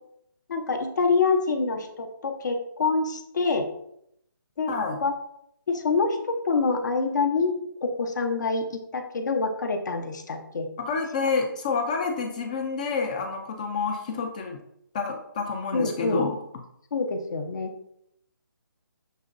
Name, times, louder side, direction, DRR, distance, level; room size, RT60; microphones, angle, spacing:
voice 1, 0.5-3.7 4.6-4.7 5.0-5.1 5.7-6.2 6.4-7.6 7.8-10.7 15.7-16.2 16.9-17.7, left 4 dB, 55° left, 5 dB, 0.7 m, -26 dB
voice 2, 4.7-5.0 10.8-14.6 14.9-16.4, left 4 dB, 20° left, 3 dB, 0.3 m, -28 dB
6.3 x 3.0 x 2.5 m, 0.75 s
hypercardioid pair, 160°, 12 cm